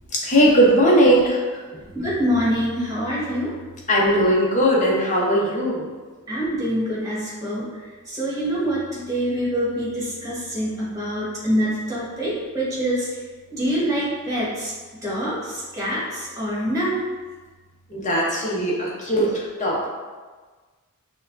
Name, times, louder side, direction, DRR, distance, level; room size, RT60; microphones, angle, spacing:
voice 1, 0.1-1.4 3.9-5.9 17.9-19.9, equal, 35° left, -5 dB, 0.9 m, -19 dB
voice 2, 1.9-3.5 6.3-7.7 8.1-13.1 13.5-14.7 15.0-17.0, equal, 15° right, -7 dB, 1.3 m, -25 dB
6.1 x 2.3 x 2.6 m, 1.4 s
head